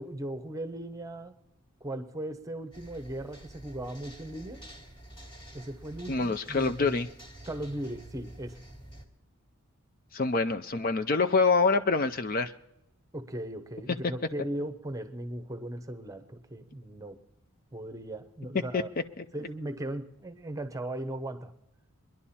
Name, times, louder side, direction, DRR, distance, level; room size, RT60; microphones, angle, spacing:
voice 1, 0.0-1.4 1.8-4.6 5.5-6.9 7.5-8.6 13.1-17.2 17.7-18.9 19.3-21.5, right 1 dB, 15° right, 9 dB, 0.9 m, -38 dB
sound 1, 2.7-9.0, right 1 dB, 25° left, 1.7 m, -48 dB
voice 2, 6.1-7.1 10.1-12.5 18.7-18.8 19.2-19.3, left 4 dB, 40° left, 9 dB, 0.5 m, -26 dB
22.5 x 11.0 x 4.3 m, 0.85 s
head